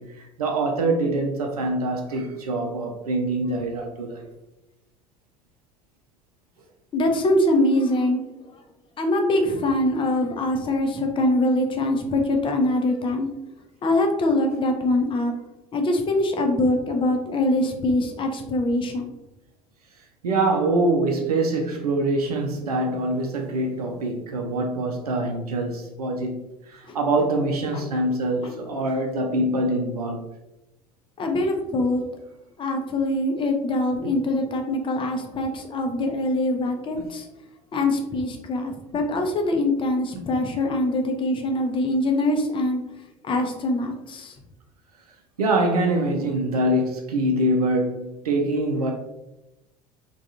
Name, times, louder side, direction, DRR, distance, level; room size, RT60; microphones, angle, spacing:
voice 1, 0.0-4.3 20.2-26.4 26.7-30.3 34.0-34.1 36.9-37.0 40.1-40.2 45.4-48.9, right 2 dB, 80° right, 0.4 m, -24 dB
voice 2, 6.9-8.2 9.0-13.3 13.8-15.3 15.7-19.1 26.9-27.0 27.7-27.8 28.4-28.5 31.2-32.0 32.6-37.3 37.7-42.8 43.2-44.3, left 1 dB, 25° left, 0.6 m, -23 dB
3.4 x 2.3 x 2.7 m
figure-of-eight pair, 65°, 19 cm